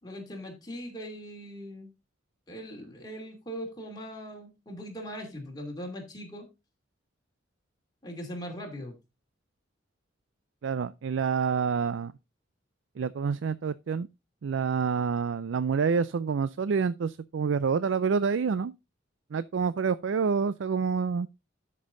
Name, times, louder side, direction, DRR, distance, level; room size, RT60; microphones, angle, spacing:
voice 1, 0.0-1.9 2.5-6.5 8.0-9.0, equal, 20° left, 2.7 m, -40 dB
voice 2, 10.6-12.1 13.0-14.1 14.4-18.7 19.3-21.3, right 5 dB, 70° right, 0.4 m, -27 dB
12.5 x 5.4 x 3.8 m
head